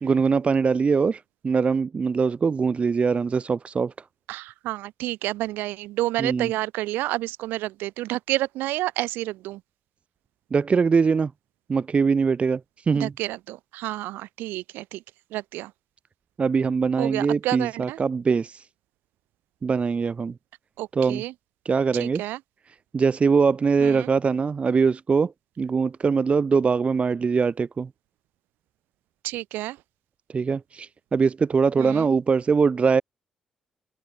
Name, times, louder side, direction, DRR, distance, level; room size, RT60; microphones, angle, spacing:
voice 1, 0.0-3.9 6.2-6.5 10.5-11.3 11.7-12.6 12.9-13.1 16.4-18.6 19.6-20.3 21.0-21.2 21.7-22.2 22.9-25.3 25.6-27.9 30.3-33.0, right 5 dB, 35° right, 0.6 m, -22 dB
voice 2, 4.3-9.6 12.9-15.0 15.3-15.7 17.0-18.0 20.8-21.3 21.9-22.4 23.8-24.1 29.2-29.8 31.8-32.1, right 17 dB, 70° right, 2.1 m, -30 dB
open air
figure-of-eight pair, 40°, 3 cm